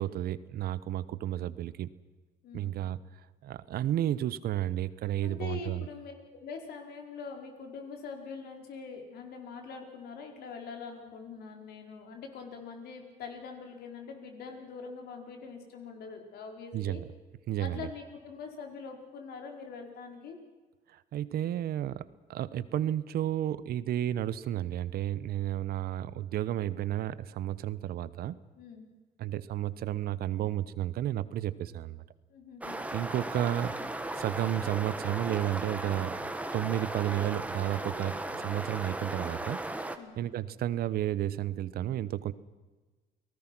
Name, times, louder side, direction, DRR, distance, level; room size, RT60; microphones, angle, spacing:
voice 1, 0.0-1.9 2.5-3.0 3.4-5.9 16.7-17.0 17.5-17.9 20.9-28.4 29.2-32.0 32.9-33.7 34.1-36.2 36.5-39.6 40.2-42.3, right 12 dB, 65° right, 17 dB, 1.0 m, -32 dB
voice 2, 5.2-17.0 17.6-20.4 28.6-28.9 32.3-32.8 40.0-40.2, left 5 dB, 70° left, 3 dB, 4.6 m, -43 dB
sound 1, 32.6-40.0, right 2 dB, 10° right, 1.7 m, -36 dB
29.5 x 19.0 x 6.1 m, 1.3 s
cardioid pair, 110°, 17 cm